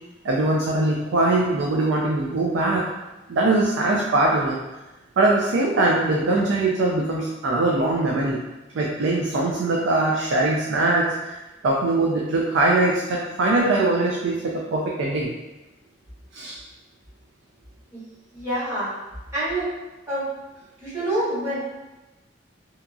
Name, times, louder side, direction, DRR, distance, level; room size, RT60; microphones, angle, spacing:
voice 1, 0.2-2.8 3.3-4.6 5.2-8.4 8.7-11.4 11.6-15.3 16.3-16.5, right 2 dB, 90° right, -3 dB, 0.4 m, -22 dB
voice 2, 18.3-18.9 19.3-19.7 20.1-20.3 20.8-21.6, right 1 dB, 15° right, -11 dB, 1.1 m, -26 dB
2.8 x 2.5 x 2.3 m, 1.1 s
head